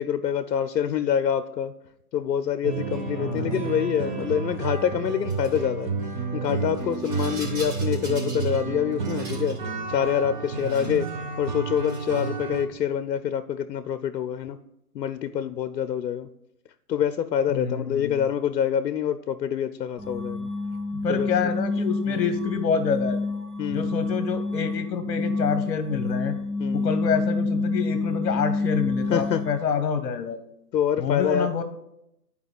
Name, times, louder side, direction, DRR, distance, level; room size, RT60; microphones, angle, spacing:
voice 1, 0.0-1.7 2.1-5.9 6.3-9.6 9.9-11.1 11.4-14.6 14.9-16.3 16.9-20.5 21.1-21.3 22.1-22.2 23.6-23.9 26.6-26.9 29.1-29.4 30.7-31.5, left 9 dB, 85° left, 12 dB, 0.5 m, -26 dB
sound 1, 2.6-12.7, right 4 dB, 30° right, 0.6 m, -31 dB
voice 2, 3.2-3.6 10.6-10.9 17.5-18.1 20.9-23.2 23.7-26.3 26.7-30.4 31.0-31.6, left 6 dB, 60° left, 8 dB, 0.8 m, -27 dB
Rattle, 5.3-5.6 6.7-8.6 8.9-9.6 10.4-11.1 11.7-12.4, right 2 dB, 50° right, 2.5 m, -42 dB
sound 2, 20.0-29.7, left 3 dB, 10° left, 1.7 m, -28 dB
10.5 x 4.7 x 3.4 m, 0.82 s
hypercardioid pair, 135°, 49 cm